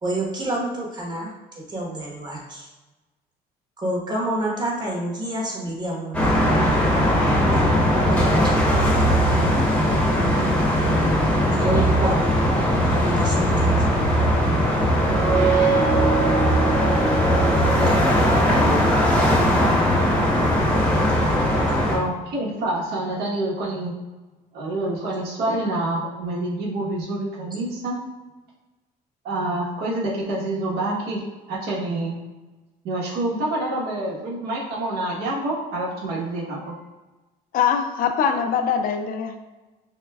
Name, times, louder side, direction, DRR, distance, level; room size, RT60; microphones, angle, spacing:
voice 1, 0.0-2.7 3.8-6.3 8.0-9.2 10.4-10.5 11.5-12.5 12.9-13.7 17.8-18.0, right 1 dB, 25° right, -3 dB, 1.2 m, -28 dB
sound 1, 6.1-22.0, equal, 5° left, 0.9 m, -19 dB
sound 2, 14.9-18.5, right 5 dB, 45° right, 1.0 m, -24 dB
voice 2, 21.8-23.9 24.5-28.0 29.2-32.2 32.8-36.8, right 1 dB, 75° right, -4 dB, 1.2 m, -27 dB
voice 3, 37.5-39.4, left 7 dB, 55° left, 6 dB, 0.5 m, -22 dB
6.2 x 2.2 x 2.3 m, 1.1 s
cardioid pair, 110°, 17 cm